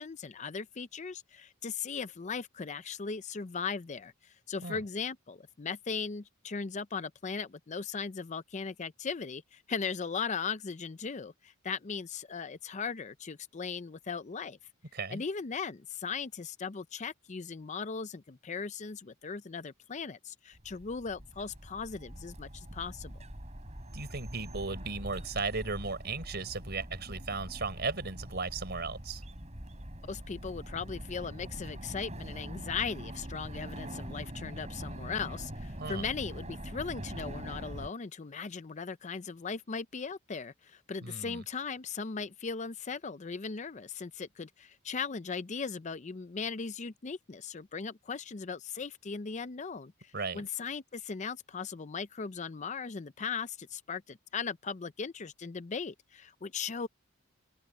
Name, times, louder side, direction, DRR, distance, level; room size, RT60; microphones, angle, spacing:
voice 1, 0.0-14.6 15.1-23.1 30.1-56.9, left 5 dB, 35° left, 0.5 m, -38 dB
voice 2, 14.9-15.2 23.9-29.2 35.8-36.0 41.0-41.4 50.1-50.5, right 4 dB, 55° right, 5.0 m, -36 dB
sound 1, 20.5-37.9, right 1 dB, 35° right, 5.7 m, -43 dB
open air
head